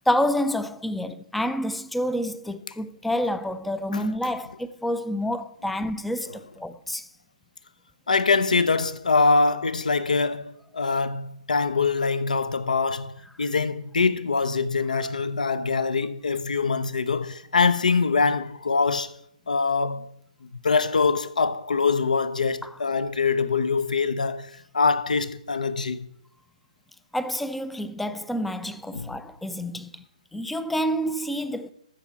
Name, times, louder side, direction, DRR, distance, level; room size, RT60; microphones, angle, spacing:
voice 1, 0.1-7.1 22.6-22.7 27.1-30.0 30.3-31.7, equal, ahead, 0.3 m, -28 dB
voice 2, 8.1-13.1 13.4-19.1 19.5-20.1 20.6-24.5 24.7-26.1 28.9-29.1, left 4 dB, 90° left, 0.8 m, -23 dB
13.5 x 4.9 x 8.3 m
hypercardioid pair, 165°, 4 cm